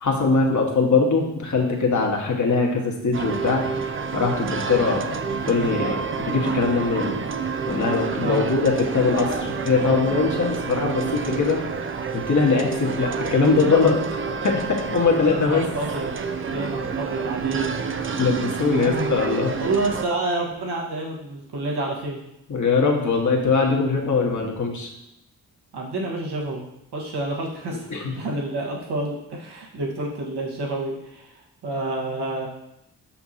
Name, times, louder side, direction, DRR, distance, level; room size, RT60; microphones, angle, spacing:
voice 1, 0.0-3.6 4.1-7.2 7.7-11.6 12.1-14.2 14.4-15.7 18.2-19.5 22.5-24.9 27.7-28.1, left 4 dB, 45° left, 0 dB, 1.6 m, -22 dB
sound 1, 3.1-20.1, right 5 dB, 30° right, 0.6 m, -28 dB
voice 2, 15.2-16.2 16.5-17.7 18.7-19.2 19.6-22.2 25.7-26.6 26.9-32.5, right 2 dB, 75° right, -2 dB, 1.6 m, -29 dB
6.0 x 5.8 x 2.9 m, 0.84 s
supercardioid pair, 40°, 41 cm